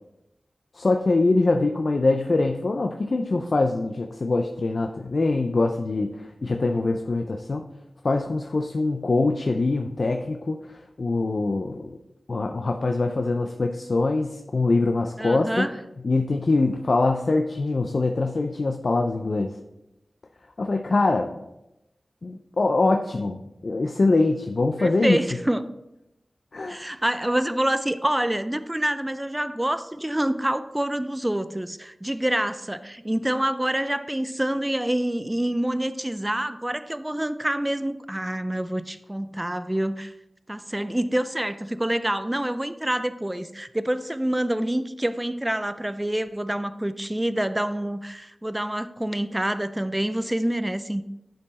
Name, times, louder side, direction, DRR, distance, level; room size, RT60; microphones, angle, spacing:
voice 1, 0.7-7.6 8.0-12.0 12.3-15.7 16.0-19.6 20.6-21.4 22.2-25.2 26.5-26.8, left 3 dB, 55° left, 4 dB, 0.5 m, -23 dB
voice 2, 15.2-15.8 24.8-25.7 26.7-40.1 40.5-51.0, right 1 dB, 10° right, 12 dB, 0.4 m, -27 dB
10.0 x 4.6 x 4.1 m, 0.90 s
wide cardioid pair, 95°, 0 cm